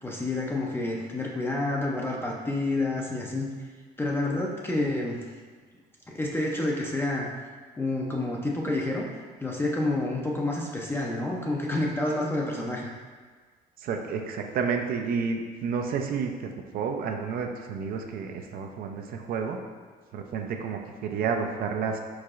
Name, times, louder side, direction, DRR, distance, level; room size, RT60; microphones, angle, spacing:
voice 1, 0.0-3.5 4.0-5.3 6.1-7.3 7.8-9.1 9.4-12.9, left 2 dB, 15° left, -2 dB, 0.4 m, -29 dB
voice 2, 13.8-19.6 20.1-22.0, right 5 dB, 60° right, 4 dB, 0.4 m, -30 dB
4.7 x 4.0 x 2.4 m, 1.5 s
cardioid pair, 110°, 17 cm